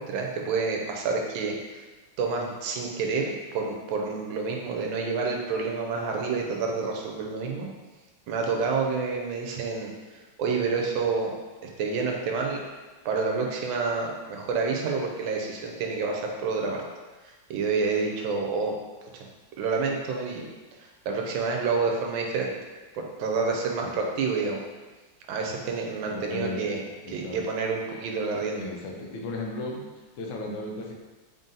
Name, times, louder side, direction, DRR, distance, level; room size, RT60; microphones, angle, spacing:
voice 1, 0.0-1.5 2.2-7.7 8.3-11.3 11.8-12.6 13.0-16.8 17.2-18.7 19.1-19.3 19.6-20.5 20.8-22.5 22.9-24.6 25.3-28.7, right 4 dB, 80° right, 1 dB, 1.3 m, -28 dB
voice 2, 26.1-27.4 28.0-28.1 28.5-30.9, left 2 dB, 80° left, 0 dB, 1.4 m, -36 dB
3.7 x 2.7 x 3.7 m, 1.3 s
omnidirectional pair, 2.2 m